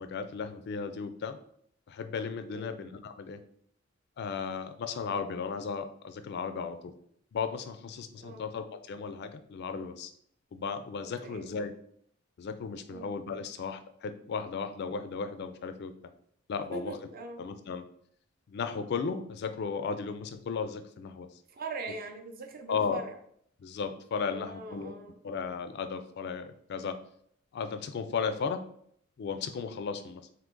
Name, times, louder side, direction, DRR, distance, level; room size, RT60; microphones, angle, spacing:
voice 1, 0.0-1.4 1.9-3.4 4.2-6.9 7.3-10.1 10.5-11.7 12.4-15.9 16.5-16.9 17.4-17.8 18.5-21.3 22.7-23.0 23.6-24.9 25.2-27.0 27.5-28.6 29.2-30.2, left 5 dB, 55° left, 9 dB, 0.3 m, -35 dB
voice 2, 8.2-8.5 11.2-11.5 12.9-13.1 16.7-17.4 21.5-23.2 24.3-25.2, right 3 dB, 45° right, 5 dB, 0.6 m, -41 dB
3.7 x 2.7 x 3.7 m, 0.65 s
head